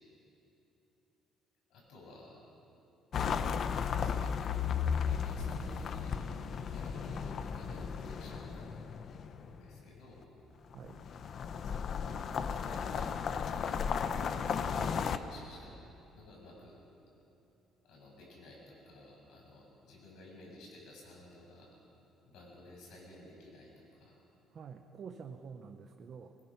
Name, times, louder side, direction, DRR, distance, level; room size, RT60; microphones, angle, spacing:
voice 1, 1.7-2.5 3.7-4.7 5.1-6.2 6.7-8.8 9.1-9.2 9.5-10.3 11.6-12.2 12.5-13.2 13.5-13.9 14.4-15.7 16.1-16.8 17.8-21.7 22.3-24.2, left 1 dB, 60° left, -2 dB, 6.5 m, -54 dB
sound 1, 3.1-9.6 10.7-15.2, left 7 dB, 35° left, 0.6 m, -35 dB
sound 2, 4.0-10.4, equal, 10° right, 3.0 m, -54 dB
voice 2, 10.7-11.1 14.8-14.9 24.5-26.4, right 6 dB, 35° right, 5 dB, 0.8 m, -48 dB
23.0 x 21.0 x 6.0 m, 2.9 s
cardioid pair, 180°, 0 cm